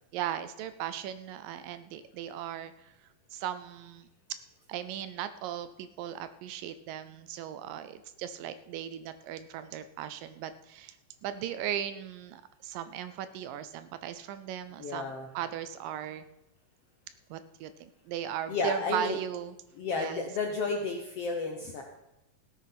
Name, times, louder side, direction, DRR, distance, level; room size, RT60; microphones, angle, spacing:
voice 1, 0.1-2.9 3.3-4.1 4.7-11.0 11.2-16.3 17.3-19.6 20.0-20.3, right 10 dB, 80° right, 12 dB, 2.1 m, -37 dB
voice 2, 14.8-15.3 18.5-19.2 19.8-21.8, left 4 dB, 70° left, 3 dB, 1.5 m, -32 dB
16.5 x 8.4 x 5.7 m, 0.91 s
omnidirectional pair, 4.2 m